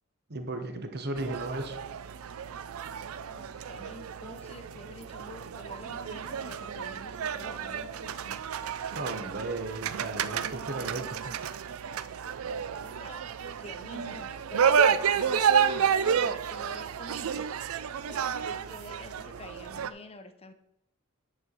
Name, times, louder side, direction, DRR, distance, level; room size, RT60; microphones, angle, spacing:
voice 1, 0.3-1.8 8.9-11.3, right 2 dB, 50° right, 6 dB, 1.1 m, -35 dB
sound 1, 1.2-19.9, right 7 dB, 85° right, 0.4 m, -30 dB
voice 2, 3.3-8.4 12.8-14.8 15.2-17.5 18.0-20.5, left 2 dB, 30° left, 9 dB, 0.7 m, -48 dB
9.8 x 4.2 x 6.4 m, 0.89 s
head